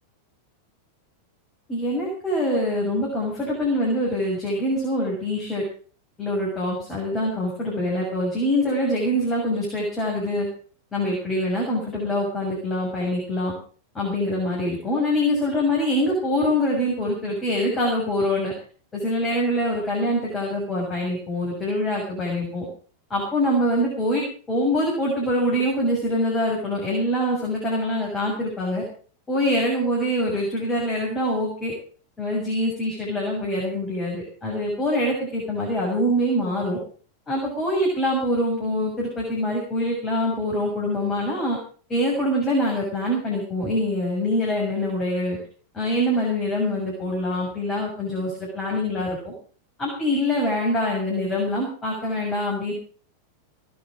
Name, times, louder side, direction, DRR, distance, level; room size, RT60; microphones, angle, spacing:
voice 1, 1.7-5.6 6.2-10.5 10.9-13.5 13.9-18.5 18.9-22.7 23.1-28.8 29.3-31.7 32.2-36.8 37.3-41.6 41.9-45.4 45.7-49.3 49.8-52.7, left 1 dB, 20° left, -2 dB, 7.1 m, -24 dB
19.0 x 9.8 x 6.5 m, 0.43 s
figure-of-eight pair, 90°, 0 cm